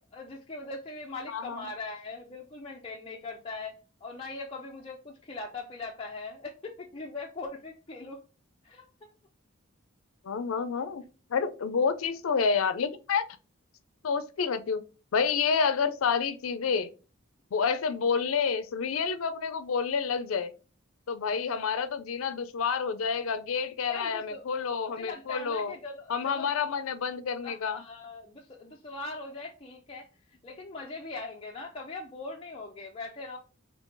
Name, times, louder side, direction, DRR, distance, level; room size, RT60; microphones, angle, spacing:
voice 1, 0.1-3.7 4.0-8.2 8.6-8.8 23.9-24.5 24.7-26.5 27.4-33.4, left 3 dB, 25° left, 0.5 m, -41 dB
voice 2, 1.3-1.7 10.2-11.0 11.3-13.2 14.0-14.8 15.1-16.9 17.5-20.5 21.1-25.7 26.1-27.8, left 6 dB, 90° left, 0.5 m, -29 dB
3.7 x 2.8 x 3.8 m
head